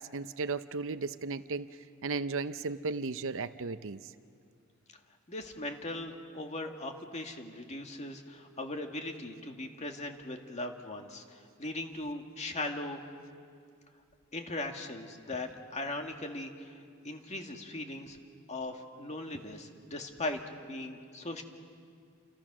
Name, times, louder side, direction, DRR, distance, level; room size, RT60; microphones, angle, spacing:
voice 1, 0.0-1.7 2.0-4.0, right 4 dB, 65° right, 12 dB, 0.7 m, -35 dB
voice 2, 5.3-13.0 14.3-18.2 18.5-21.4, left 2 dB, 30° left, 4 dB, 2.1 m, -39 dB
29.0 x 28.0 x 6.2 m, 2.2 s
head